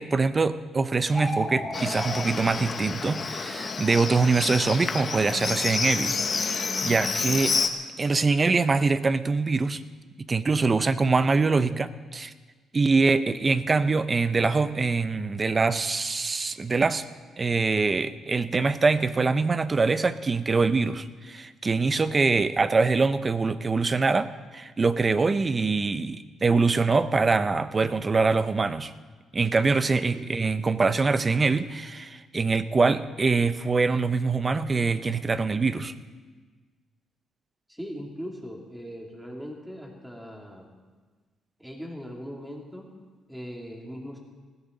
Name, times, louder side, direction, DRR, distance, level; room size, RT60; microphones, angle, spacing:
voice 1, 0.0-7.6 8.0-9.8 10.2-12.3 12.7-17.0 17.4-28.9 29.3-35.9, right 4 dB, 30° right, 13 dB, 0.8 m, -24 dB
sound 1, 1.0-2.2, left 1 dB, 15° left, 3.4 m, -32 dB
Livestock farm animals working animals, 1.7-7.7, left 5 dB, 40° left, 1.4 m, -29 dB
voice 2, 37.7-40.7 41.6-42.9 43.3-44.2, equal, 5° right, 0 dB, 3.2 m, -39 dB
20.0 x 16.0 x 4.1 m, 1.4 s
cardioid pair, 90°, 0 cm